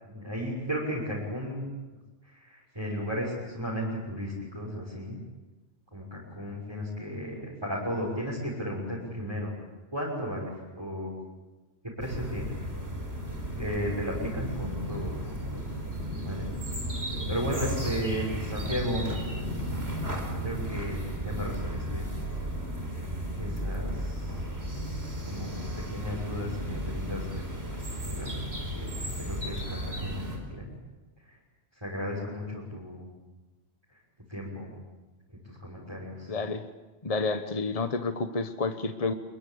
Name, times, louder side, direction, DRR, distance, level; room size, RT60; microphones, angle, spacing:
voice 1, 0.0-1.7 2.2-5.2 5.9-9.5 9.9-11.1 12.0-12.5 13.6-15.6 16.2-16.5 17.3-19.1 20.4-22.1 23.3-24.4 25.3-25.5 25.9-27.4 27.7-30.7 31.3-31.4 31.8-33.1 34.3-34.7 35.4-36.4, equal, 25° right, -6 dB, 6.2 m, -35 dB
sound 1, 12.0-30.4, right 1 dB, 70° right, 5.2 m, -34 dB
voice 2, 36.3-36.6 37.0-39.1, left 3 dB, 35° left, 8 dB, 1.2 m, -30 dB
27.5 x 22.5 x 8.6 m, 1.2 s
omnidirectional pair, 1.1 m